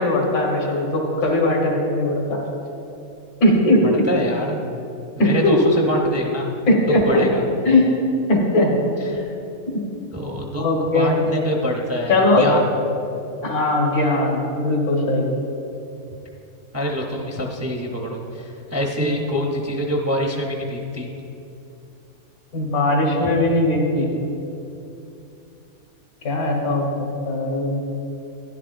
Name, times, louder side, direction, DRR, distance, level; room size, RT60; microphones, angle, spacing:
voice 1, 0.0-2.4 3.4-4.0 5.2-5.6 6.7-7.3 7.7-7.9 8.3-8.7 9.7-9.8 10.6-11.2 12.1-12.5 13.4-15.2 19.0-19.1 22.5-24.1 26.2-26.9 27.2-27.8, left 1 dB, 85° left, 0 dB, 2.0 m, -19 dB
voice 2, 4.1-4.6 5.2-6.5 7.0-7.4 9.1-9.3 10.1-12.7 16.7-21.1, equal, 20° right, 0 dB, 0.4 m, -25 dB
12.0 x 10.5 x 2.5 m, 2.8 s
omnidirectional pair, 1.6 m